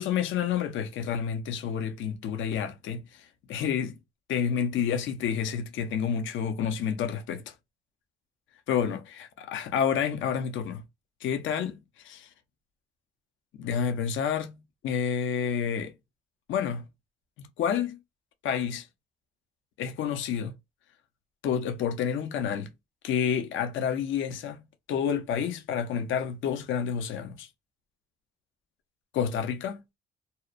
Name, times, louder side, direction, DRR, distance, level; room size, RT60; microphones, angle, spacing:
voice 1, 0.0-4.0 4.3-7.5 8.7-10.8 11.2-12.3 13.5-15.9 16.5-16.9 17.4-18.0 18.4-18.9 19.8-20.5 21.4-22.7 23.0-24.6 24.9-27.5 29.1-29.8, left 8 dB, 75° left, 0.6 m, -29 dB
2.7 x 2.0 x 2.4 m
cardioid pair, 90°, 20 cm